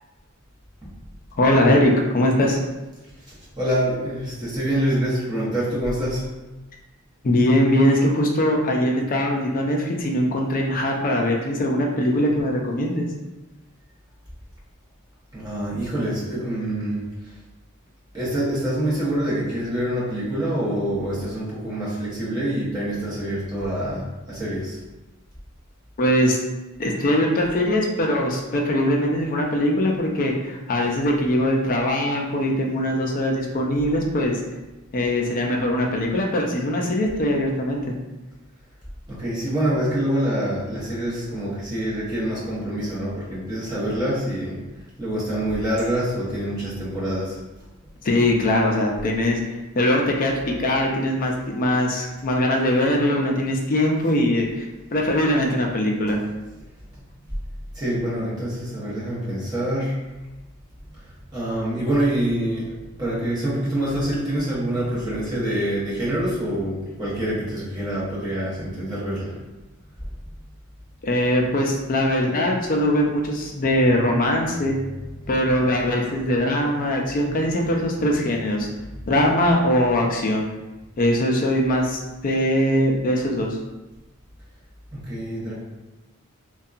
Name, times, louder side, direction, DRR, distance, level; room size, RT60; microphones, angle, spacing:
voice 1, 1.4-2.6 7.2-13.1 26.0-26.4 26.8-34.4 34.9-37.9 48.0-49.4 49.7-56.2 71.0-74.8 75.3-78.7 79.1-80.5 81.0-83.5, left 1 dB, 40° left, 0 dB, 0.4 m, -21 dB
voice 2, 3.3-6.3 15.3-17.1 18.1-24.8 39.1-44.6 45.0-47.4 56.1-56.2 57.7-60.0 61.0-62.7 63.0-69.4 75.2-75.3 77.4-77.5 77.9-78.0 78.2-78.3 84.9-85.5, right 1 dB, 20° right, -9 dB, 0.9 m, -26 dB
2.7 x 2.2 x 2.4 m, 1.1 s
head